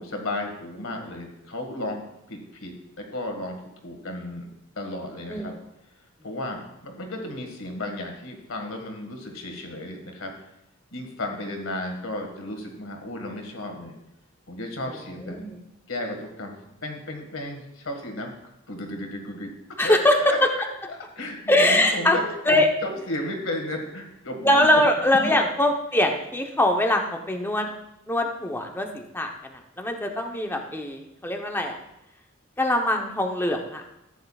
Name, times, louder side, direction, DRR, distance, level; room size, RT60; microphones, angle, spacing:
voice 1, 0.0-2.0 2.3-4.5 4.8-5.5 6.2-10.3 10.9-14.0 14.5-15.4 15.9-18.3 18.7-19.5 19.8-20.0 20.2-20.6 20.9-24.9 25.2-25.4, left 1 dB, 80° left, 3 dB, 1.8 m, -34 dB
voice 2, 15.2-15.6 19.8-20.2 21.5-22.2 22.5-22.7 24.4-27.7 28.1-29.3 29.8-31.8 32.6-33.8, left 1 dB, 10° left, 3 dB, 0.9 m, -22 dB
14.5 x 9.2 x 2.4 m, 0.84 s
head